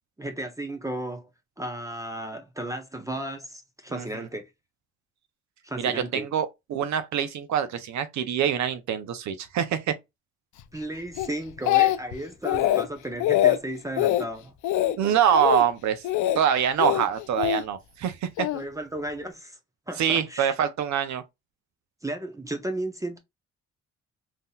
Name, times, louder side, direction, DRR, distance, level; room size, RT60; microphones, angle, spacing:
voice 1, 0.2-1.3 1.6-4.5 5.6-6.3 10.7-14.5 18.5-19.6 19.9-20.5 22.0-23.2, right 1 dB, 10° right, 0.6 m, -34 dB
voice 2, 3.9-4.3 5.8-10.0 15.0-16.0 16.4-18.5 20.0-21.2, right 9 dB, 70° right, 0.6 m, -25 dB
Speech, 11.2-12.2 12.4-12.9 13.2-13.6 14.0-14.2 14.6-15.0 15.3-15.6 16.0-16.4 16.8-17.6 18.4-18.6, left 13 dB, 75° left, 0.5 m, -23 dB
3.7 x 2.7 x 2.3 m
cardioid pair, 90°, 30 cm